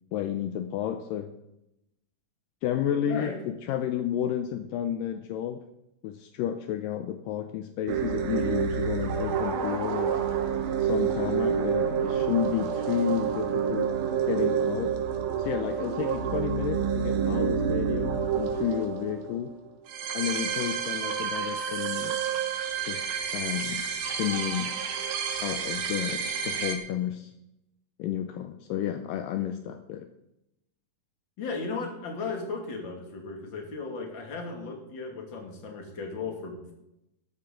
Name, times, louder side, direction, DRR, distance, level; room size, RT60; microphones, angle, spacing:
voice 1, 0.1-1.3 2.6-5.6 6.0-10.2 10.8-13.9 14.3-15.0 15.4-19.5 20.1-22.4 22.8-23.1 23.3-24.8 25.4-27.3 28.0-30.1, left 10 dB, 80° left, 8 dB, 2.3 m, -31 dB
voice 2, 3.1-3.4 31.4-36.7, left 4 dB, 35° left, 1 dB, 2.6 m, -36 dB
sound 1, 7.9-26.8, right 7 dB, 90° right, 3.2 m, -29 dB
13.5 x 12.5 x 3.9 m, 0.87 s
omnidirectional pair, 4.1 m